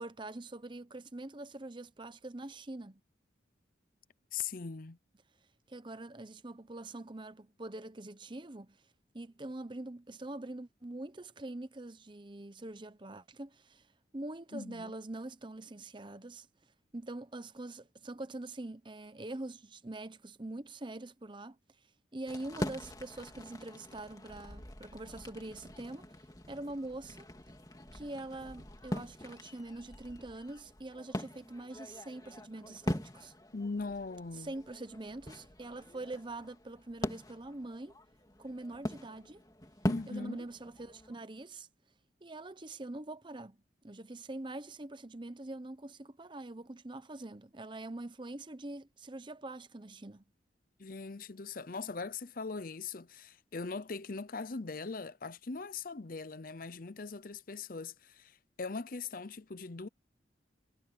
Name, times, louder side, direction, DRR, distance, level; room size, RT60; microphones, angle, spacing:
voice 1, 0.0-3.0 5.7-8.8 9.1-13.9 14.1-16.5 16.9-21.6 22.1-26.1 26.5-27.3 27.9-33.3 34.4-37.9 38.4-39.4 40.1-41.7 42.2-43.6 43.8-50.2, right 2 dB, 25° right, 0.8 m, -44 dB
voice 2, 4.3-5.0 14.5-14.9 33.5-34.5 39.8-40.5 50.8-59.9, left 4 dB, 50° left, 0.7 m, -40 dB
sound 1, 22.3-41.1, left 1 dB, 20° left, 2.7 m, -42 dB
head